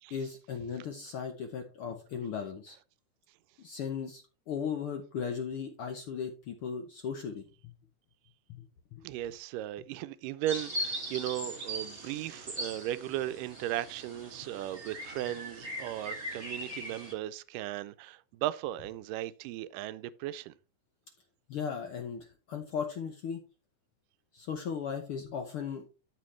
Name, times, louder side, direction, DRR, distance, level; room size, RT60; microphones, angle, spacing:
voice 1, 0.1-2.8 3.6-7.7 8.5-8.7 8.9-9.0 21.5-23.4 24.3-25.8, left 7 dB, 80° left, 1.2 m, -37 dB
voice 2, 9.0-20.5, right 13 dB, 85° right, 2.2 m, -36 dB
sound 1, 10.5-17.1, right 1 dB, 25° right, 2.1 m, -40 dB
12.5 x 5.5 x 3.2 m
omnidirectional pair, 3.8 m